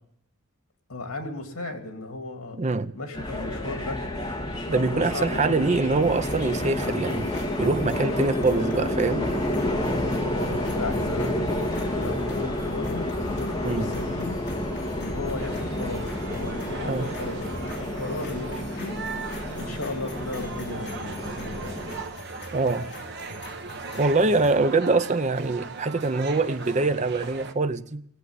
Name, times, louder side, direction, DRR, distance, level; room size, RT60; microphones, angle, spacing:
voice 1, 0.9-2.6 2.9-4.0 4.8-5.8 10.3-14.4 14.9-19.0 19.5-21.8, left 2 dB, 80° left, 2.6 m, -35 dB
voice 2, 2.5-2.9 4.7-9.3 13.6-13.9 16.9-17.1 22.5-22.9 23.9-28.1, right 3 dB, 30° right, 0.6 m, -24 dB
sound 1, 3.1-22.0, left 1 dB, 20° left, 2.0 m, -30 dB
sound 2, 6.0-24.7, left 1 dB, 50° left, 3.2 m, -44 dB
sound 3, 15.4-27.5, right 4 dB, 50° right, 1.1 m, -39 dB
18.0 x 8.0 x 10.0 m
head